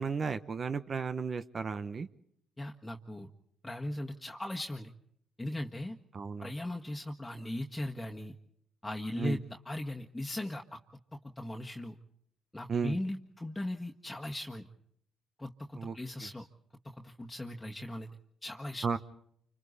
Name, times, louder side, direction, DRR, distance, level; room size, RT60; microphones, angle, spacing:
voice 1, 0.0-2.1 6.1-6.5 9.2-9.4 12.7-13.0 15.7-16.0 16.2-16.3 18.8-19.0, right 5 dB, 45° right, 11 dB, 1.0 m, -34 dB
voice 2, 2.6-3.3 3.6-4.9 5.4-6.0 6.4-8.4 8.8-10.8 11.4-11.9 12.5-14.7 15.4-16.4 17.0-18.1 18.4-18.8, left 1 dB, 15° left, 0 dB, 1.6 m, -38 dB
29.0 x 26.0 x 4.2 m, 0.73 s
hypercardioid pair, 50°, 0 cm